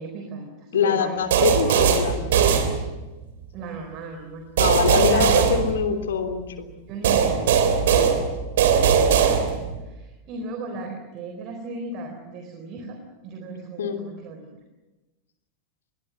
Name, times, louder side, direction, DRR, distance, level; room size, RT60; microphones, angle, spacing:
voice 1, 0.0-1.2 3.5-4.5 5.0-5.8 6.9-7.4 7.8-8.1 8.7-9.4 9.8-13.0 13.2-14.6, right 3 dB, 40° right, 4 dB, 4.1 m, -36 dB
voice 2, 0.7-2.5 4.6-6.7 7.9-8.1 13.8-14.0, left 6 dB, 65° left, 6 dB, 3.3 m, -24 dB
sound 1, 1.3-3.2 4.6-6.3 7.0-9.8, right 7 dB, 55° right, 3.4 m, -20 dB
28.0 x 22.0 x 7.6 m, 1.1 s
figure-of-eight pair, 90°, 0 cm